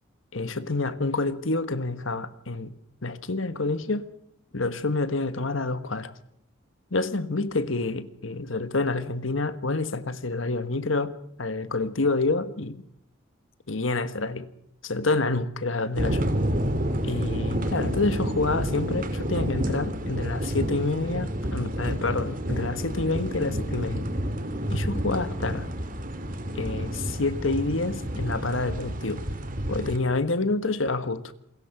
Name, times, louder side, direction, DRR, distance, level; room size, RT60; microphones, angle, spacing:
voice 1, 0.3-2.7 3.0-4.1 4.5-6.1 6.9-11.1 11.4-12.8 13.7-14.5 14.8-16.3 17.0-24.1 24.7-25.7 26.5-29.2 29.7-31.2, left 3 dB, 70° left, 1.5 m, -28 dB
sound 1, 16.0-30.0, equal, 40° right, 2.5 m, -29 dB
28.0 x 21.5 x 6.0 m
head